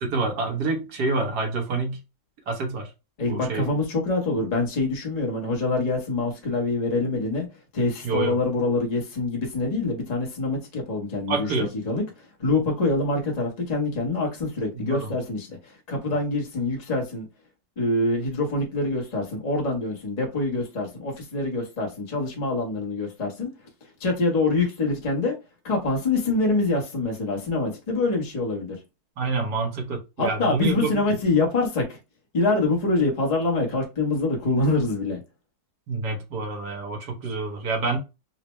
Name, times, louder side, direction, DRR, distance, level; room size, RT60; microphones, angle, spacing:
voice 1, 0.1-2.0 2.5-2.9 3.3-3.7 8.0-8.4 11.3-11.7 14.7-15.1 29.2-31.0 35.9-38.0, right 3 dB, 65° right, 1.5 m, -27 dB
voice 2, 3.2-7.5 7.7-11.5 11.8-17.3 17.8-23.5 24.0-25.3 25.6-28.8 30.2-32.0 32.3-35.2, left 2 dB, 30° left, 0.8 m, -25 dB
4.0 x 2.1 x 3.0 m
omnidirectional pair, 2.0 m